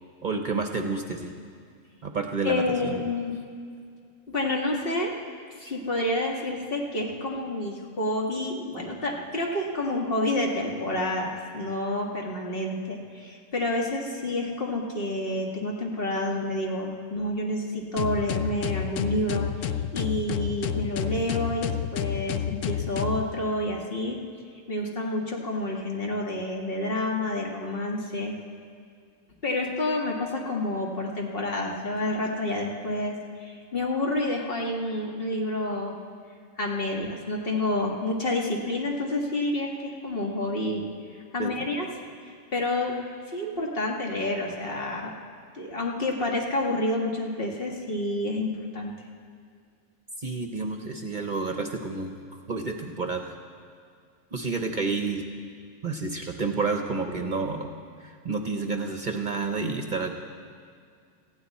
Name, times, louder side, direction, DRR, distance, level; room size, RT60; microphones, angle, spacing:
voice 1, 0.2-1.3 2.0-3.0 41.4-41.7 50.2-52.1 52.5-53.3 54.3-55.3 55.8-57.7 58.0-60.2, right 4 dB, 45° right, 4 dB, 0.9 m, -30 dB
voice 2, 2.4-3.3 4.3-5.1 5.6-24.2 24.7-28.3 29.4-36.0 36.6-40.9 41.3-41.9 42.5-43.0 43.3-45.1 45.5-49.0, left 1 dB, 50° left, -1 dB, 1.9 m, -29 dB
sound 1, 18.0-23.2, left 9 dB, 85° left, 1.0 m, -29 dB
18.5 x 15.0 x 4.2 m, 2.2 s
omnidirectional pair, 1.3 m